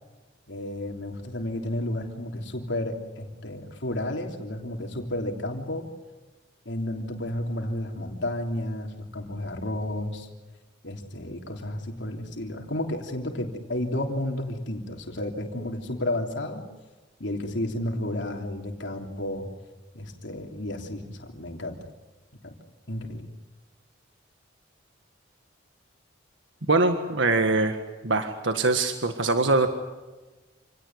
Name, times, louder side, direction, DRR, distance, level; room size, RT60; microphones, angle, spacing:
voice 1, 0.5-5.9 6.6-10.3 10.8-16.6 17.2-19.5 19.9-21.9 22.4-22.5 22.9-23.3, left 1 dB, 70° left, 2 dB, 3.4 m, -32 dB
voice 2, 26.7-27.8 28.0-29.7, right 3 dB, 80° right, 7 dB, 1.7 m, -23 dB
28.0 x 18.0 x 9.6 m, 1.2 s
head